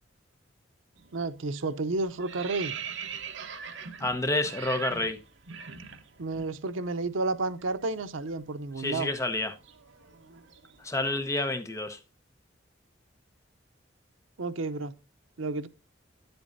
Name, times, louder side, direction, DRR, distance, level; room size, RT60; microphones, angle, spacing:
sound 1, 1.0-1.3 1.6-6.5 6.8-7.0 7.3-11.3, right 6 dB, 70° right, 1.0 m, -42 dB
voice 1, 1.1-2.7 6.2-9.1 14.4-14.9 15.4-15.7, right 3 dB, 90° right, 0.7 m, -31 dB
voice 2, 4.0-5.2 8.8-9.6 10.8-12.0, left 2 dB, 15° left, 1.0 m, -29 dB
9.6 x 8.0 x 2.6 m
head